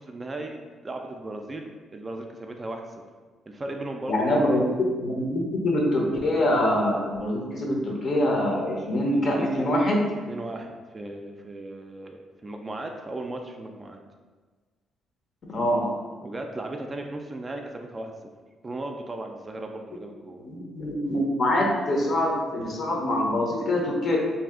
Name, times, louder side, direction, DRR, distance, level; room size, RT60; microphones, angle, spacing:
voice 1, 0.0-2.8 3.5-4.6 10.3-14.0 16.2-18.1 18.6-20.4, right 2 dB, 25° right, 3 dB, 0.3 m, -36 dB
voice 2, 4.1-10.0 15.5-15.9 20.4-24.2, left 1 dB, 50° left, -1 dB, 0.7 m, -24 dB
2.7 x 2.4 x 3.5 m, 1.4 s
cardioid pair, 90°, 0 cm